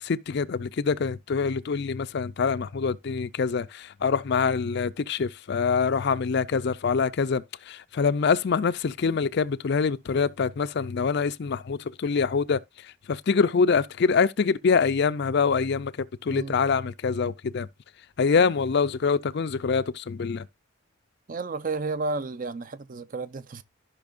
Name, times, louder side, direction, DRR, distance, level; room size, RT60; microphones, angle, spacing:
voice 1, 0.0-12.6 13.1-15.9 16.2-17.7 18.2-20.4, left 5 dB, 50° left, 0.4 m, -25 dB
voice 2, 21.3-23.6, right 3 dB, 40° right, 0.5 m, -32 dB
14.0 x 5.7 x 2.5 m
head